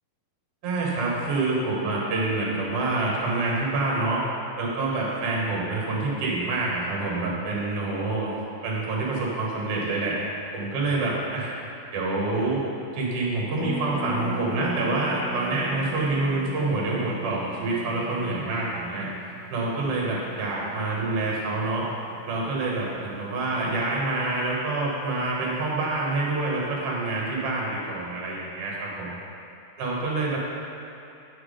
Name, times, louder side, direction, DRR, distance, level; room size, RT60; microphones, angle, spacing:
voice 1, 0.6-4.2 4.6-8.3 8.6-10.1 10.5-11.5 11.9-12.6 12.9-19.1 19.5-21.9 22.3-29.2 29.8-30.4, right 2 dB, 55° right, -4 dB, 1.9 m, -27 dB
Harp, 13.6-23.2 23.4-23.5 23.7-24.0, equal, 60° left, 1.7 m, -38 dB
8.5 x 6.1 x 5.0 m, 2.8 s
omnidirectional pair, 4.3 m